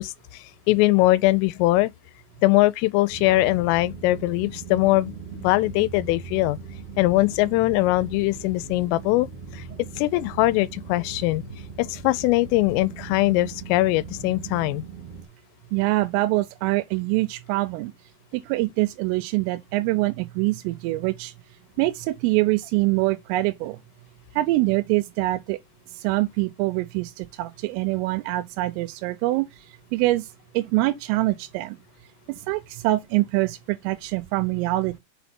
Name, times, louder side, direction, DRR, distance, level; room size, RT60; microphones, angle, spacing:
voice 1, 0.0-1.9 2.4-6.6 7.0-9.6 10.0-11.4 11.8-14.8, left 18 dB, 85° left, 3.1 m, -21 dB
sound 1, 3.1-15.2, right 5 dB, 30° right, 1.5 m, -39 dB
voice 2, 15.7-17.9 18.3-21.3 21.8-23.8 24.4-25.6 25.9-29.5 29.9-30.3 30.5-31.8 32.3-35.0, right 19 dB, 85° right, 3.2 m, -24 dB
6.9 x 4.5 x 4.3 m
omnidirectional pair, 5.8 m